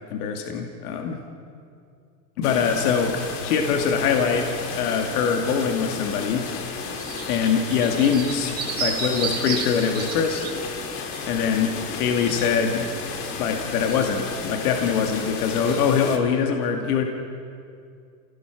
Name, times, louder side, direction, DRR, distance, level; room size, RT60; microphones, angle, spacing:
voice 1, 0.1-1.2 2.4-6.5 7.3-10.5 11.3-12.9 13.4-17.0, left 6 dB, 60° left, 3 dB, 2.2 m, -23 dB
sound 1, 2.4-16.2, left 5 dB, 25° left, 1.8 m, -33 dB
sound 2, 6.4-10.5 11.1-11.3 12.0-15.9, right 5 dB, 20° right, 3.2 m, -34 dB
28.5 x 17.0 x 6.1 m, 2.3 s
supercardioid pair, 155°, 50 cm